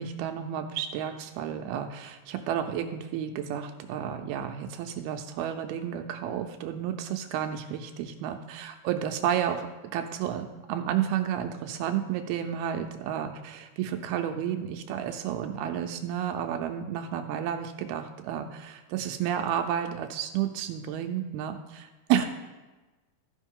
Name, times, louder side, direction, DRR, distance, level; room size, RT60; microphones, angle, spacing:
voice 1, 0.0-22.3, right 9 dB, 80° right, 6 dB, 2.4 m, -31 dB
14.5 x 5.3 x 3.6 m, 1.2 s
omnidirectional pair, 4.6 m